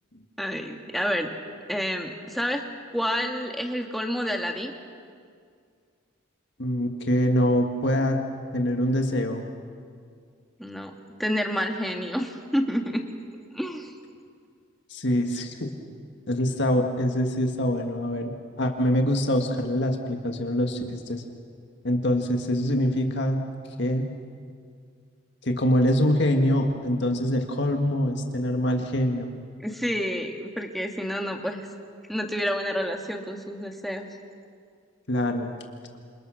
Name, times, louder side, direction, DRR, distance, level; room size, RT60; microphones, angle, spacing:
voice 1, 0.4-1.3 1.7-2.7 2.9-4.7 10.6-10.9 11.2-13.0 13.5-13.9 29.6-31.6 32.1-34.1, equal, ahead, 2 dB, 1.9 m, -29 dB
voice 2, 6.6-8.2 8.5-9.5 14.9-15.7 16.3-18.3 18.6-21.2 21.8-23.4 23.8-24.1 25.4-29.3 35.1-35.5, equal, 55° left, 4 dB, 1.9 m, -24 dB
27.5 x 27.5 x 6.5 m, 2.2 s
head